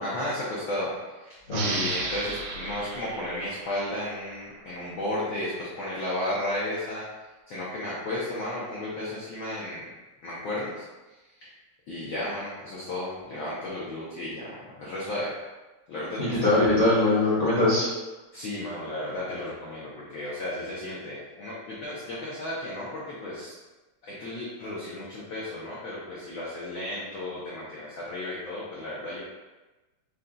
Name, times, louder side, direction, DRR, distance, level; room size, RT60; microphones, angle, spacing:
voice 1, 0.0-0.9 1.3-7.0 7.5-9.8 10.2-10.8 11.9-14.5 14.8-15.3 15.9-16.5 18.3-23.5 24.0-29.2, left 1 dB, 85° left, -7 dB, 1.1 m, -33 dB
voice 2, 1.5-1.8 16.2-17.9, left 2 dB, 50° left, -10 dB, 0.8 m, -22 dB
sound 1, 1.5-4.7, right 3 dB, 75° right, 1.8 m, -35 dB
5.4 x 2.3 x 3.7 m, 1.1 s
omnidirectional pair, 3.3 m